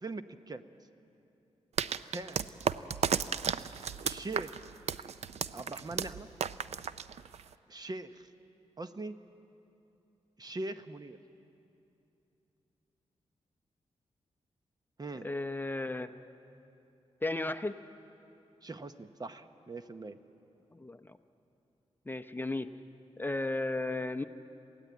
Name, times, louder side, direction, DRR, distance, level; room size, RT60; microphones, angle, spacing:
voice 1, 0.0-0.6 2.1-2.5 4.0-4.6 5.5-6.3 7.7-8.3 8.8-9.2 10.4-11.2 15.0-15.3 18.6-20.2, right 2 dB, 35° right, 10 dB, 0.8 m, -41 dB
sound 1, 1.8-7.5, right 7 dB, 70° right, 0.5 m, -34 dB
voice 2, 15.2-16.1 17.2-17.8 20.7-21.2 22.1-22.7 23.2-24.2, left 2 dB, 15° left, 9 dB, 0.7 m, -34 dB
22.0 x 15.5 x 9.3 m, 2.8 s
cardioid pair, 80°, 12 cm